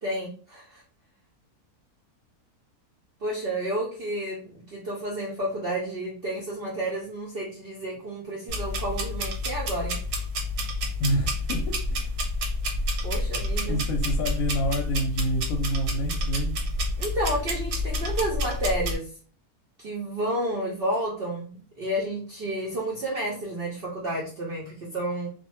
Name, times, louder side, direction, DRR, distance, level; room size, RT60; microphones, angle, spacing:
voice 1, 0.0-0.8 3.2-10.0 13.0-13.8 17.0-19.1 19.8-25.3, right 1 dB, 60° right, 0.6 m, -31 dB
sound 1, 8.5-19.0, left 1 dB, 85° right, 1.2 m, -29 dB
voice 2, 11.0-12.2 13.7-16.6, equal, 70° left, 0.9 m, -28 dB
2.5 x 2.1 x 2.9 m
omnidirectional pair, 1.6 m